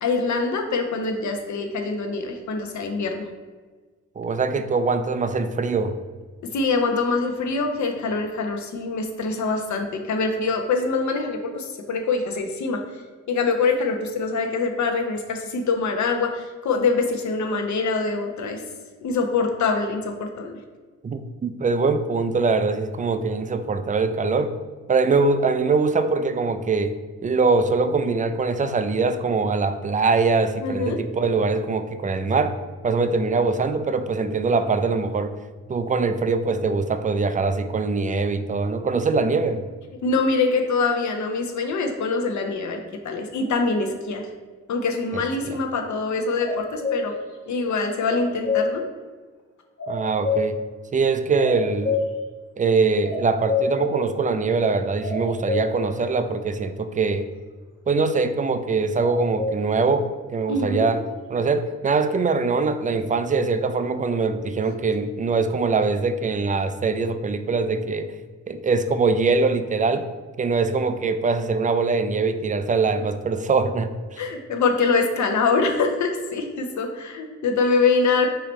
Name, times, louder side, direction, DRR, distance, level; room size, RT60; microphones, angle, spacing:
voice 1, 0.0-3.3 6.4-12.8 13.3-18.6 19.0-20.5 30.6-31.0 40.0-44.3 44.7-47.1 47.5-48.8 60.5-60.8 74.2-78.3, left 4 dB, 60° left, 4 dB, 0.7 m, -24 dB
voice 2, 4.2-6.0 21.0-24.5 24.9-26.9 27.2-32.5 32.8-35.3 35.7-39.6 45.1-45.6 49.9-50.6 50.9-52.0 52.6-57.3 57.9-61.0 61.3-68.1 68.5-70.1 70.4-74.2, right 4 dB, 25° right, 9 dB, 0.4 m, -23 dB
sound 1, 46.4-47.1 48.0-48.7 49.8-50.6 51.4-52.1 53.0-53.7 55.0-55.7 58.9-59.6, left 4 dB, 40° left, 1.2 m, -25 dB
4.7 x 3.0 x 3.0 m, 1.4 s
supercardioid pair, 50°, 33 cm